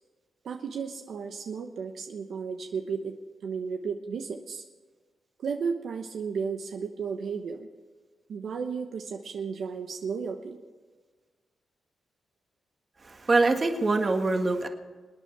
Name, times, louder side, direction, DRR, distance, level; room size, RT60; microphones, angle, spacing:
voice 1, 0.4-4.6 5.4-7.7 8.3-10.6, right 5 dB, 70° right, 4 dB, 1.0 m, -34 dB
voice 2, 13.0-14.7, right 3 dB, 35° right, 5 dB, 1.7 m, -24 dB
26.5 x 9.3 x 4.8 m, 1.4 s
cardioid pair, 80°, 0 cm